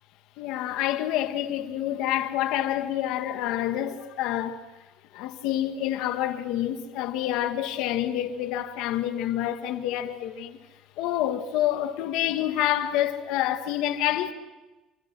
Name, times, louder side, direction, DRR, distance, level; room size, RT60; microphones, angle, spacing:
voice 1, 0.4-4.6 5.1-10.6 11.0-14.3, left 12 dB, 75° left, 1.8 m, -27 dB
29.5 x 26.0 x 6.2 m
cardioid pair, 175°, 0 cm